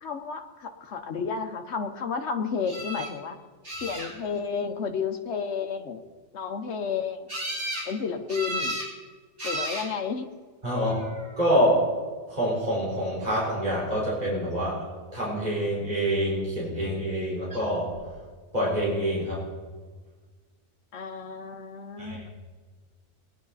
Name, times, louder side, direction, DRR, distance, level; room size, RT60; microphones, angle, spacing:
voice 1, 0.0-3.4 3.8-6.0 6.3-7.3 7.9-8.8 9.4-10.3 20.9-22.3, left 6 dB, 65° left, 6 dB, 1.3 m, -31 dB
sound 1, 2.6-3.1 3.6-4.4 7.3-7.9 8.3-8.9 9.4-9.9 10.8-11.3 17.5-17.6 17.9-18.0, right 1 dB, 70° right, 4.7 m, -33 dB
voice 2, 10.6-11.1 11.4-11.9 12.3-14.9 15.1-17.9 18.5-19.5 22.0-22.2, equal, 35° right, -7 dB, 4.4 m, -26 dB
20.0 x 10.5 x 4.1 m, 1.5 s
omnidirectional pair, 1.2 m